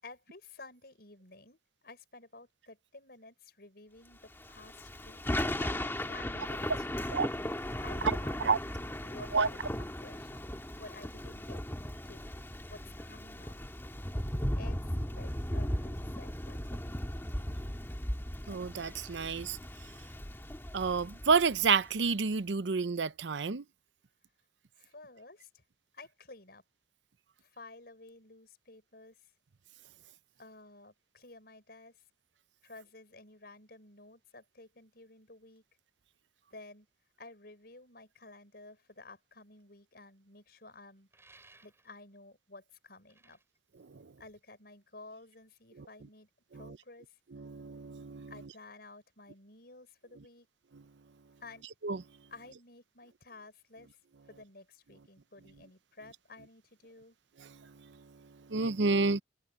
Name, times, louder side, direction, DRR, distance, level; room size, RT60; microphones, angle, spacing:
voice 1, 0.0-5.2 5.6-7.1 7.8-8.4 9.0-10.3 10.8-11.6 12.0-12.3 12.7-13.5 14.5-17.0 24.7-25.6 25.9-26.6 27.4-29.3 30.4-32.0 32.6-35.6 36.5-36.9 37.2-41.1 41.6-43.4 44.2-47.2 48.3-50.5 51.4-51.6 52.3-54.0 54.3-57.1, left 3 dB, 60° left, 6.7 m, -53 dB
Thunder / Rain, 4.4-21.9, left 1 dB, 15° left, 1.8 m, -37 dB
voice 2, 8.0-8.6 9.3-9.5 18.5-19.6 20.7-23.6 43.9-44.1 46.5-46.8 47.3-48.3 51.8-52.0 57.5-57.9 58.5-59.2, right 4 dB, 90° right, 0.7 m, -30 dB
sound 1, 41.1-42.1 42.9-44.6, right 3 dB, 15° right, 7.3 m, -61 dB
head